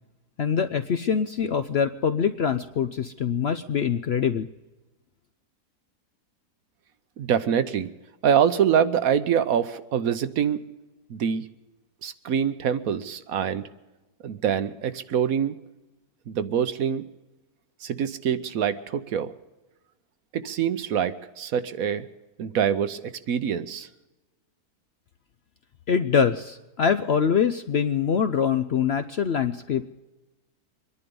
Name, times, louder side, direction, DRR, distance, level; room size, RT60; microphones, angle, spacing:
voice 1, 0.4-4.5 25.9-29.9, left 7 dB, 60° left, 9 dB, 0.7 m, -24 dB
voice 2, 7.2-7.9 8.2-10.7 11.1-11.4 12.0-13.7 14.2-15.6 16.3-17.0 17.8-19.3 20.3-22.1 22.4-23.9, right 8 dB, 65° right, 11 dB, 1.2 m, -25 dB
24.5 x 11.0 x 5.3 m, 1.1 s
omnidirectional pair, 1.6 m